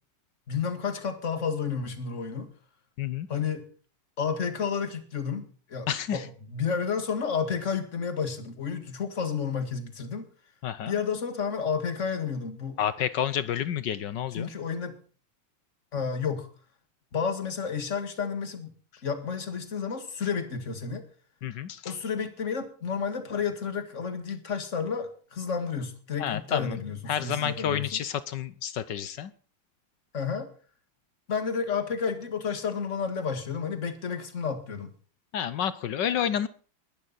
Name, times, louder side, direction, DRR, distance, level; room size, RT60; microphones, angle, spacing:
voice 1, 0.5-2.5 3.3-3.7 4.2-10.3 10.9-12.8 14.3-15.0 15.9-16.5 17.1-18.7 19.0-21.0 21.8-28.0 30.1-30.5 31.3-34.9, left 6 dB, 35° left, 2.0 m, -31 dB
voice 2, 5.9-6.3 10.6-11.0 12.8-14.5 21.4-22.0 26.2-26.8 27.1-29.3 35.3-36.5, left 9 dB, 65° left, 1.4 m, -30 dB
20.5 x 11.5 x 4.1 m
omnidirectional pair, 2.3 m